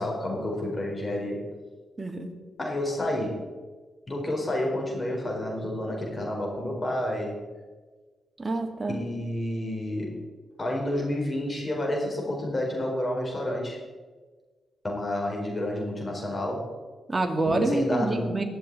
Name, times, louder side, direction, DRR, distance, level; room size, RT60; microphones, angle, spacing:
voice 1, 0.0-1.5 2.6-3.4 4.1-7.4 8.9-10.2 10.6-13.8 14.8-16.7 17.5-18.4, left 1 dB, 30° left, 0 dB, 4.3 m, -30 dB
voice 2, 2.0-2.3 8.4-9.0 17.1-18.5, right 2 dB, 25° right, 4 dB, 2.0 m, -27 dB
21.0 x 7.2 x 4.1 m, 1.3 s
cardioid pair, 65°, 0 cm